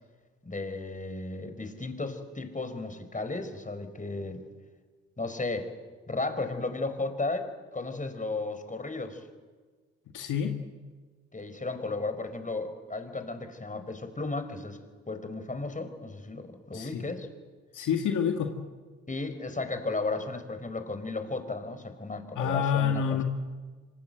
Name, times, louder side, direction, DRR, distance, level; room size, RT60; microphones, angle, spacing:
voice 1, 0.4-4.5 5.2-5.7 6.1-9.2 11.3-14.8 15.1-17.3 19.1-23.2, left 3 dB, 25° left, 9 dB, 4.8 m, -34 dB
voice 2, 10.1-10.5 16.7-17.0 17.7-18.5 22.4-23.2, left 7 dB, 70° left, 4 dB, 2.0 m, -27 dB
26.0 x 26.0 x 8.0 m, 1.4 s
hypercardioid pair, 45°, 32 cm